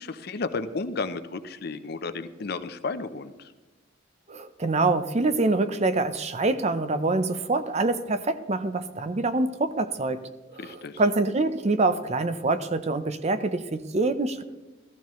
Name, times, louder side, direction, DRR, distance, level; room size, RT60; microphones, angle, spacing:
voice 1, 0.0-3.3 10.6-11.0, left 3 dB, 55° left, 10 dB, 0.6 m, -33 dB
voice 2, 4.3-14.4, right 2 dB, 35° right, 11 dB, 0.5 m, -25 dB
14.0 x 14.0 x 3.1 m, 1.1 s
head